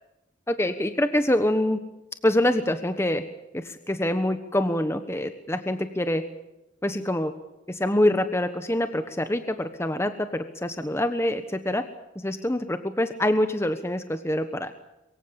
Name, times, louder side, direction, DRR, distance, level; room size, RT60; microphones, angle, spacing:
voice 1, 0.5-1.8 2.2-3.2 3.5-6.2 6.8-7.3 7.7-11.8 12.1-14.7, left 1 dB, 15° left, 9 dB, 1.2 m, -25 dB
24.0 x 23.0 x 7.0 m, 0.95 s
head